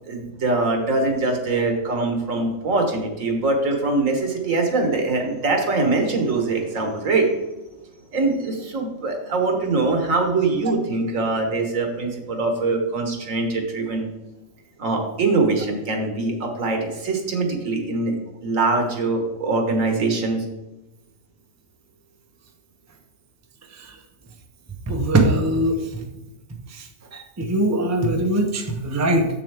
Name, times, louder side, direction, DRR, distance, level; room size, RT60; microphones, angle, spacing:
voice 1, 0.1-7.3 8.1-14.1 14.8-18.1 18.4-20.4, right 3 dB, 85° right, 3 dB, 1.7 m, -23 dB
voice 2, 24.9-26.0 26.7-29.3, right 1 dB, 15° right, 3 dB, 0.6 m, -22 dB
7.2 x 7.0 x 3.5 m, 1.0 s
omnidirectional pair, 1.3 m